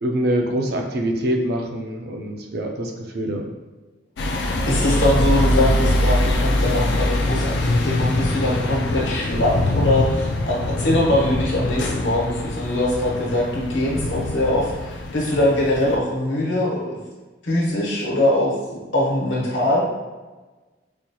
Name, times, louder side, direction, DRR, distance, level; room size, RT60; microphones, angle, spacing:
voice 1, 0.0-3.5, right 1 dB, 55° right, 2 dB, 0.5 m, -24 dB
sound 1, 4.2-16.0, left 1 dB, 65° left, 0.3 m, -23 dB
voice 2, 4.7-17.0 17.4-19.8, left 1 dB, 85° left, -4 dB, 1.2 m, -22 dB
4.3 x 2.8 x 2.2 m, 1.2 s
head